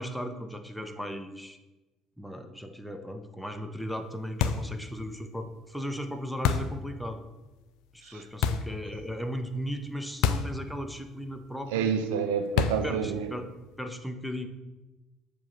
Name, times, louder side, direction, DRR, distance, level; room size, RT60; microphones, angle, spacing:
voice 1, 0.0-1.6 2.2-7.2 7.9-12.0 12.8-13.5 13.8-14.5, equal, ahead, 6 dB, 0.9 m, -36 dB
sound 1, 4.4-4.8 6.4-6.8 8.4-8.8 10.2-10.6 10.9-11.0 12.6-13.0, left 7 dB, 70° left, 0.4 m, -27 dB
voice 2, 11.7-13.3, right 7 dB, 75° right, 7 dB, 0.5 m, -28 dB
7.1 x 3.3 x 5.6 m, 1.1 s
hypercardioid pair, 55°, 0 cm